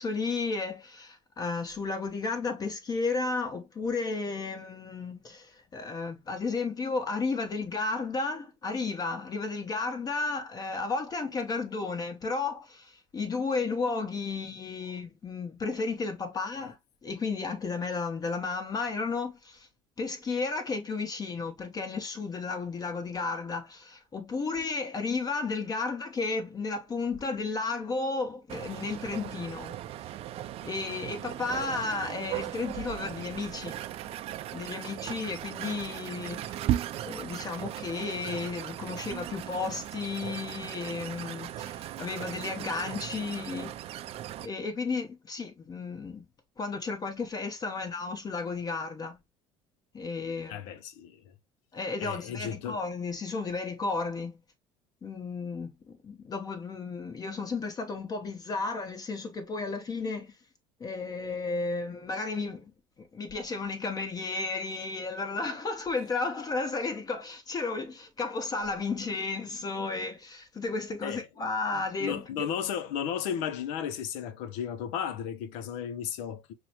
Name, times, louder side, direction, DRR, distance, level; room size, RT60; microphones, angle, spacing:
voice 1, 0.0-19.7 20.0-29.7 30.6-33.7 34.5-43.8 44.4-46.3 46.6-49.2 49.9-50.5 51.7-54.4 55.0-60.3 60.8-62.7 63.0-72.2, left 4 dB, 30° left, 0.9 m, -33 dB
sound 1, 28.5-44.5, right 12 dB, 55° right, 0.4 m, -37 dB
voice 2, 50.5-51.3 52.0-52.8 71.0-71.3 71.7-76.5, left 8 dB, 80° left, 0.5 m, -34 dB
6.0 x 2.1 x 2.8 m
supercardioid pair, 100°, 12 cm